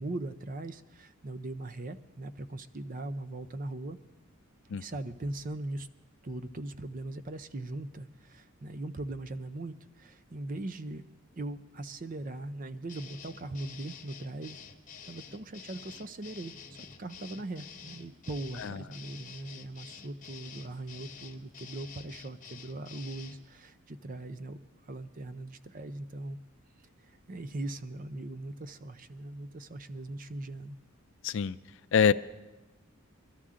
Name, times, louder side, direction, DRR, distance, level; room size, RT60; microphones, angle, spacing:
voice 1, 0.0-4.0 4.7-5.9 6.2-11.0 11.4-14.6 15.1-26.4 27.0-30.8, right 2 dB, 40° right, 11 dB, 0.6 m, -40 dB
sound 1, 12.9-23.4, left 6 dB, 35° left, 1.1 m, -49 dB
voice 2, 31.2-31.6 31.9-32.1, left 6 dB, 60° left, 15 dB, 0.4 m, -25 dB
22.5 x 13.0 x 3.7 m, 1.1 s
head